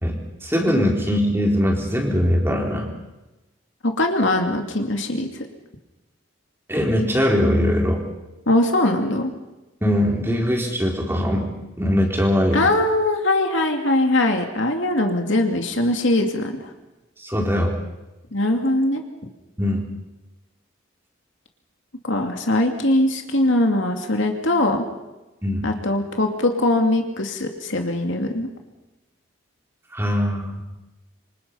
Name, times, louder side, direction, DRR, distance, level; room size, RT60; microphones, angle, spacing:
voice 1, 0.0-2.9 6.7-8.0 9.8-11.5 11.8-12.7 17.2-17.7 19.6-19.9 25.4-25.7 29.9-30.6, equal, 10° right, 0 dB, 4.1 m, -21 dB
voice 2, 3.8-5.5 8.5-9.3 12.5-16.7 18.3-19.0 22.0-24.8 25.6-28.5, left 1 dB, 65° left, 4 dB, 2.5 m, -21 dB
27.5 x 25.5 x 5.7 m, 1.1 s
head